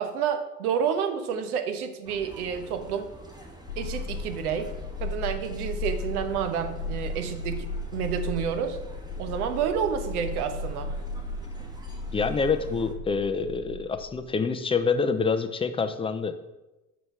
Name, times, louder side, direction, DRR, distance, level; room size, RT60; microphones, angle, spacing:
voice 1, 0.0-3.1 3.8-4.7 5.0-8.8 9.2-10.9, right 7 dB, 70° right, 8 dB, 1.0 m, -29 dB
sound 1, 2.0-12.9, right 1 dB, 10° right, 1.2 m, -46 dB
sound 2, 3.7-14.3, left 3 dB, 80° left, 0.9 m, -35 dB
voice 2, 12.1-16.4, left 5 dB, 15° left, 10 dB, 0.4 m, -26 dB
6.2 x 5.1 x 5.8 m, 1.0 s
figure-of-eight pair, 65°, 46 cm